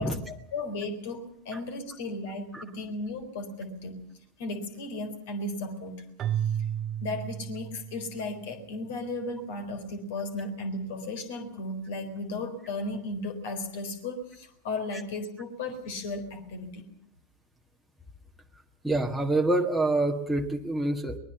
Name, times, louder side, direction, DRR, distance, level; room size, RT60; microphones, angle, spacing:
voice 1, 0.0-4.0 4.4-6.0 6.4-6.5 7.0-16.8, left 2 dB, 50° left, 8 dB, 4.0 m, -35 dB
Keyboard (musical), 6.2-8.4, right 10 dB, 30° right, 0.8 m, -32 dB
voice 2, 18.8-21.2, right 2 dB, ahead, 7 dB, 1.7 m, -26 dB
23.5 x 20.5 x 6.9 m, 0.70 s
figure-of-eight pair, 90°, 0 cm